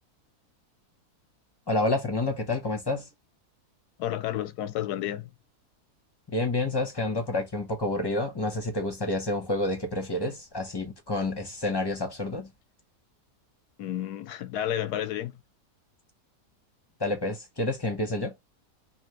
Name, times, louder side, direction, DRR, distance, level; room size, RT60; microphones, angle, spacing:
voice 1, 1.7-3.1 6.3-12.5 17.0-18.3, left 2 dB, 20° left, 0.7 m, -29 dB
voice 2, 4.0-5.3 13.8-15.3, left 11 dB, 90° left, 1.1 m, -31 dB
3.2 x 2.9 x 4.2 m
omnidirectional pair, 1.7 m